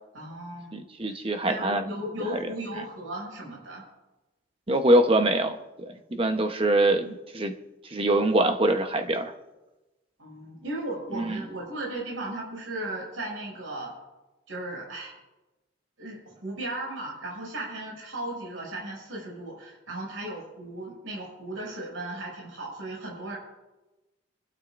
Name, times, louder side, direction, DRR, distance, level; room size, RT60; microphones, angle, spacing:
voice 1, 0.1-0.9 1.4-3.8 10.2-13.9 14.5-15.1 16.0-23.4, right 1 dB, 75° right, -2 dB, 6.4 m, -36 dB
voice 2, 0.7-1.8 2.3-2.4 4.7-7.5 7.9-9.3 11.1-11.4, right 1 dB, 25° right, 6 dB, 0.9 m, -24 dB
28.0 x 12.0 x 2.6 m, 1.1 s
head